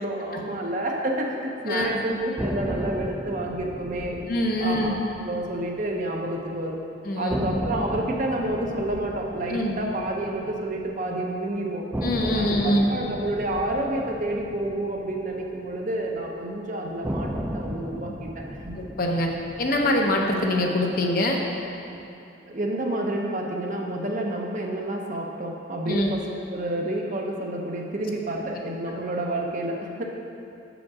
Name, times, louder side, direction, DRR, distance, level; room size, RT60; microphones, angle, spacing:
voice 1, 0.0-4.2 4.6-5.0 5.2-6.8 7.2-11.8 12.3-18.8 22.5-26.2 26.5-30.0, right 1 dB, 40° right, 0 dB, 0.7 m, -29 dB
voice 2, 1.7-2.0 4.3-5.0 7.0-7.4 9.5-9.8 12.0-12.9 18.7-19.3 19.6-21.4 25.9-26.1, left 1 dB, 50° left, 1 dB, 0.7 m, -24 dB
sound 1, 2.4-6.5 6.7-6.8 7.3-11.4 11.9-16.3 17.0-21.4, equal, 10° right, 0.4 m, -35 dB
7.1 x 5.1 x 4.7 m, 2.8 s
head